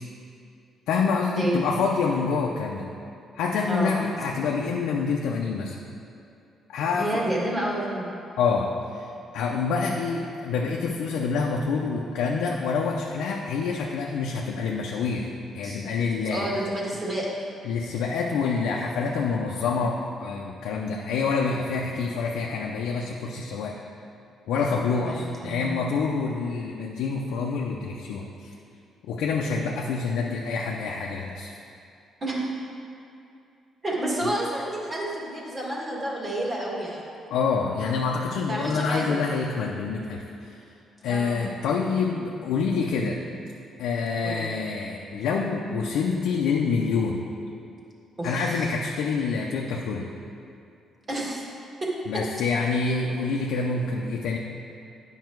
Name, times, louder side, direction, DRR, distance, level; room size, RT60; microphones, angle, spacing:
voice 1, 0.9-2.9 3.3-5.8 6.7-7.3 8.4-9.1 9.3-15.3 15.5-16.5 17.6-23.7 24.5-28.5 29.1-31.5 37.3-40.6 41.0-43.2 43.8-47.2 48.2-50.1 52.1-54.4, left 5 dB, 85° left, -1 dB, 0.6 m, -27 dB
voice 2, 3.7-4.0 6.9-8.1 15.6-15.8 16.2-17.3 24.9-25.8 32.2-32.5 33.8-37.0 38.5-39.2 41.0-41.5 44.2-44.5 48.2-48.7 51.1-51.4 51.8-51.9, right 1 dB, 30° right, -4 dB, 2.1 m, -30 dB
9.5 x 5.6 x 4.6 m, 2.6 s
cardioid pair, 90°, 0 cm